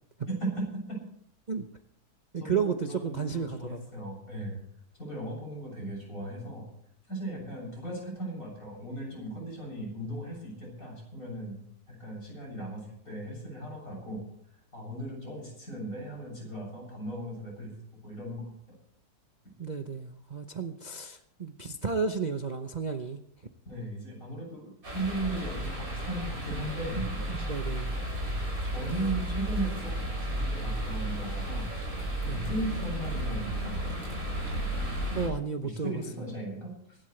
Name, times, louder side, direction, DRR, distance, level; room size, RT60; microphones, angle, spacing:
voice 1, 0.3-1.0 2.4-4.6 5.0-6.7 7.1-11.6 11.9-14.2 14.7-17.8 18.0-18.5 23.6-27.4 28.7-31.7 32.2-34.0 35.6-37.0, right 1 dB, 55° left, -1 dB, 8.1 m, -37 dB
voice 2, 2.3-3.8 19.6-23.2 27.5-28.0 32.3-32.4 35.1-35.9, right 5 dB, 35° right, 4 dB, 0.9 m, -32 dB
sound 1, 24.8-35.3, right 1 dB, 60° right, 6.9 m, -33 dB
24.5 x 12.0 x 3.3 m, 0.70 s
omnidirectional pair, 1.7 m